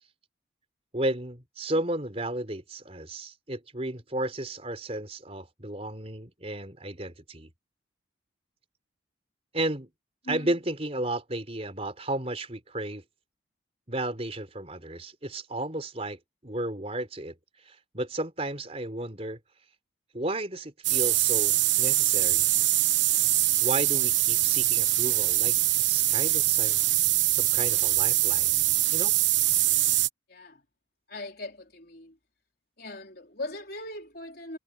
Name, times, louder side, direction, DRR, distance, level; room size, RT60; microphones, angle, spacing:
voice 1, 0.9-7.5 9.5-9.9 10.3-13.0 13.9-17.4 17.6-19.4 20.1-22.5 23.6-25.6 25.8-26.8 27.3-28.6 28.9-29.1, right 1 dB, 30° right, 4.2 m, -33 dB
voice 2, 10.2-10.5 30.3-30.6 31.1-32.2 32.8-34.6, left 2 dB, 50° left, 4.3 m, -39 dB
sound 1, 20.8-30.1, right 15 dB, 70° right, 1.1 m, -23 dB
head